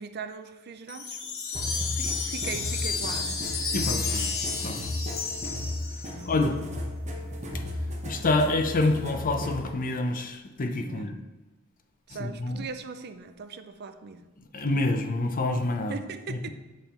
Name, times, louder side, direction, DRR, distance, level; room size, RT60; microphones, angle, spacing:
voice 1, 0.0-3.5 6.1-6.5 10.8-11.3 12.1-14.3 15.9-16.5, right 5 dB, 50° right, 9 dB, 0.5 m, -40 dB
Wind chime, 0.9-6.3, left 5 dB, 75° left, 1.0 m, -32 dB
sound 1, 1.5-9.6, left 1 dB, 35° right, 1.0 m, -34 dB
voice 2, 3.7-4.3 4.6-4.8 6.3-6.6 7.5-7.6 8.0-11.2 12.2-12.6 14.4-16.0 16.3-16.5, left 2 dB, 40° left, 6 dB, 0.6 m, -27 dB
7.9 x 3.6 x 4.3 m, 1.2 s
head